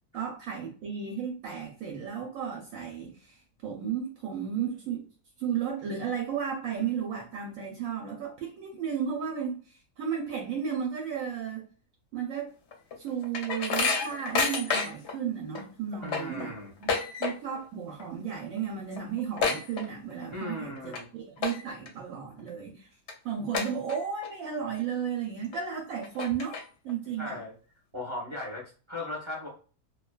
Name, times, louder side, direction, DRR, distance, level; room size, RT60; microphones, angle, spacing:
voice 1, 0.1-5.0 5.4-11.7 12.1-12.5 13.0-16.9 17.2-22.9 23.2-27.4 29.0-29.1, right 7 dB, 70° right, 0 dB, 1.0 m, -34 dB
sound 1, 12.7-15.1 15.5-15.6 15.9-17.6 17.9-18.3 18.6-18.7 18.9-20.3 20.8-21.0 21.4-21.9 22.4-22.5 23.1-23.2 23.5-24.3 24.7-24.8 25.5-25.6 26.0-26.9, left 4 dB, 65° left, 0.8 m, -30 dB
voice 2, 16.0-16.7 20.3-21.0 27.2-27.5 27.9-29.5, left 2 dB, 30° right, -4 dB, 0.5 m, -37 dB
2.6 x 2.3 x 2.2 m, 0.38 s
omnidirectional pair, 1.6 m